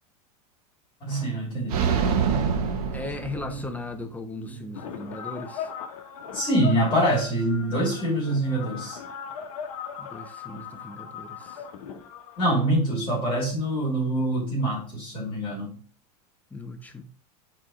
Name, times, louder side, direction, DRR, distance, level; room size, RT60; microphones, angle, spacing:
voice 1, 1.0-1.9 3.3-3.5 4.4-4.5 6.3-9.0 12.4-15.7, right 1 dB, 25° left, 2.6 m, -25 dB
sound 1, 1.7-3.9, right 6 dB, 80° right, 1.1 m, -25 dB
voice 2, 2.9-5.7 10.0-11.7 16.5-17.0, left 2 dB, 10° left, 0.7 m, -38 dB
sound 2, 4.7-13.3, left 7 dB, 65° left, 1.3 m, -39 dB
4.5 x 4.4 x 4.9 m
supercardioid pair, 140°, 20 cm